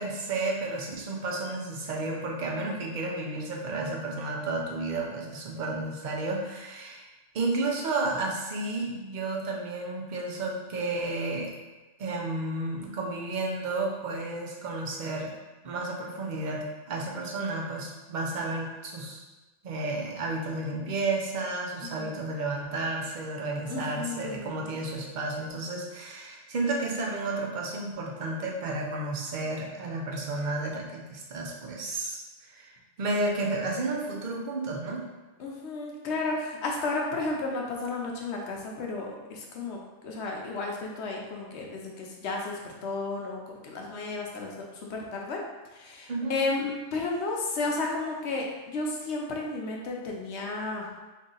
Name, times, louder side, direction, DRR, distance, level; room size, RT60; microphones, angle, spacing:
voice 1, 0.0-7.1 7.3-11.5 12.0-15.3 15.6-19.2 19.6-35.1 46.1-46.4, right 2 dB, 50° right, -1 dB, 0.6 m, -32 dB
voice 2, 21.8-22.2 23.7-24.6 35.4-39.8 40.0-45.4 45.7-50.9, left 3 dB, 65° left, -1 dB, 0.9 m, -33 dB
3.2 x 2.7 x 3.8 m, 1.2 s
omnidirectional pair, 1.3 m